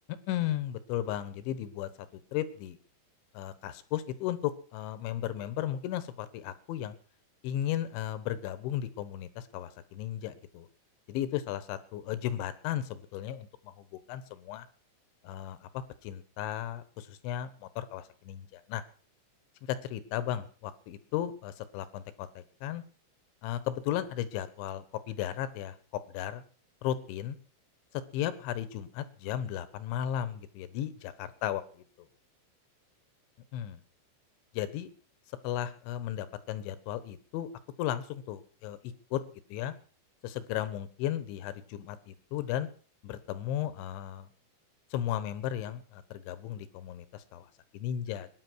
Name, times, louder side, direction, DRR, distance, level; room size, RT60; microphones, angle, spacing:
voice 1, 0.1-2.8 3.4-6.9 7.4-10.7 11.1-14.7 15.2-18.8 19.7-22.8 23.4-26.4 26.8-27.4 28.1-31.8 33.5-33.8 34.5-34.9 35.4-37.5 37.8-38.8 39.1-39.2 39.5-39.7 40.2-42.7 43.0-44.3 44.9-48.3, left 11 dB, 75° left, 15 dB, 3.4 m, -35 dB
21.5 x 10.0 x 6.3 m, 0.42 s
omnidirectional pair, 5.8 m